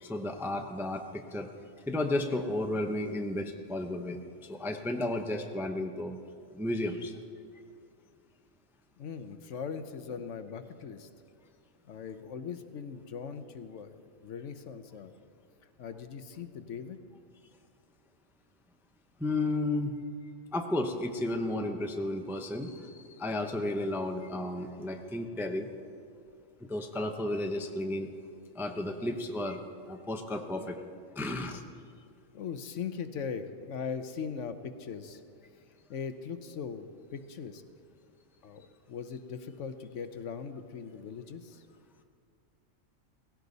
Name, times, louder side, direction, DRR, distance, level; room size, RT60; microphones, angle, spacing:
voice 1, 0.0-1.5 1.9-4.2 4.5-6.2 6.5-7.1 19.2-19.9 20.5-25.7 26.7-28.1 28.5-29.6 29.9-30.8 31.2-31.6, left 1 dB, ahead, 5 dB, 0.5 m, -33 dB
voice 2, 9.0-11.1 11.8-15.1 15.8-17.0 32.3-35.2 35.9-37.6 38.4-41.7, left 6 dB, 65° left, 10 dB, 1.1 m, -40 dB
17.5 x 16.0 x 4.0 m, 2.4 s
omnidirectional pair, 1.4 m